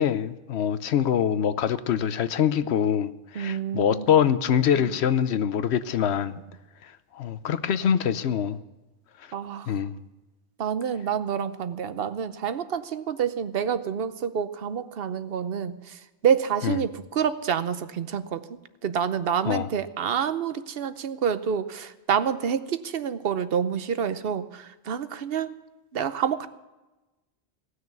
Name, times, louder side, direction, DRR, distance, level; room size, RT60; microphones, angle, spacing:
voice 1, 0.0-6.4 6.8-8.6 9.7-10.0 16.6-16.8 19.4-19.7, left 8 dB, 75° left, 13 dB, 1.0 m, -24 dB
voice 2, 3.4-4.1 4.8-4.9 9.3-9.7 10.6-15.9 16.2-18.4 18.8-25.5 25.9-26.5, right 7 dB, 60° right, 13 dB, 0.9 m, -28 dB
17.5 x 6.5 x 9.3 m, 1.1 s
omnidirectional pair, 1.1 m